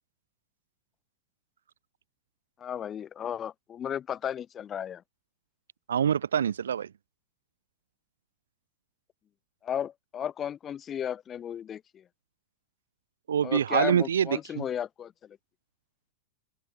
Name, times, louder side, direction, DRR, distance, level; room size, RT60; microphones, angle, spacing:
voice 1, 2.6-5.0 9.6-12.0 13.4-15.4, left 9 dB, 25° left, 5.6 m, -34 dB
voice 2, 5.9-6.9 13.3-14.6, right 8 dB, 65° right, 0.6 m, -25 dB
open air
figure-of-eight pair, 90°, 0 cm